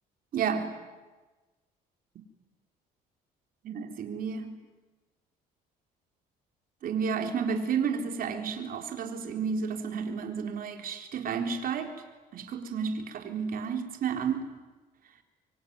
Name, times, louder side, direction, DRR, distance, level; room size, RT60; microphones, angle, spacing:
voice 1, 0.3-0.8 2.2-2.3 3.6-4.6 6.8-12.0 12.3-14.5, right 6 dB, 60° right, 5 dB, 3.9 m, -31 dB
25.0 x 24.5 x 9.6 m, 1.2 s
cardioid pair, 110°, 17 cm